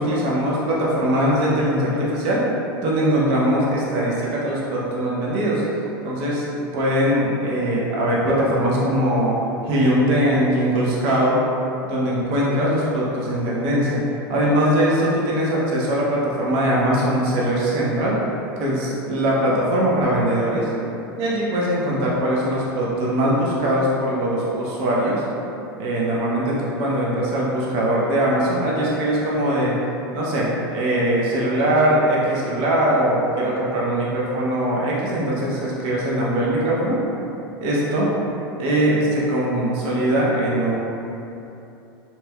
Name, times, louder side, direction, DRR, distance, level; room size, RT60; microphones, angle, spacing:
voice 1, 0.0-2.5 2.8-5.6 6.0-6.5 6.7-9.4 9.6-11.4 11.9-14.0 14.3-18.2 18.6-20.7 21.2-25.2 25.8-29.8 30.1-37.0 37.6-38.1 38.6-40.8, right 1 dB, 50° right, -5 dB, 0.7 m, -21 dB
2.9 x 2.9 x 2.3 m, 2.8 s
hypercardioid pair, 95°, 12 cm